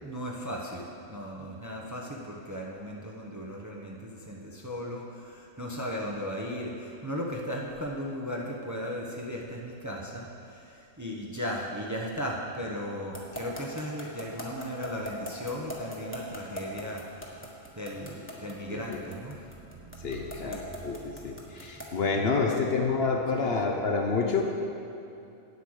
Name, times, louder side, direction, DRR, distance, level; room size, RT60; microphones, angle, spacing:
voice 1, 0.0-17.5 17.7-21.3 22.4-22.6 23.3-23.5, equal, 15° right, -1 dB, 0.8 m, -37 dB
sound 1, 13.1-22.0, equal, 10° left, 1.4 m, -40 dB
voice 2, 18.7-19.0 20.0-24.5, left 4 dB, 55° left, 2 dB, 1.0 m, -28 dB
9.0 x 8.2 x 6.4 m, 2.8 s
omnidirectional pair, 1.4 m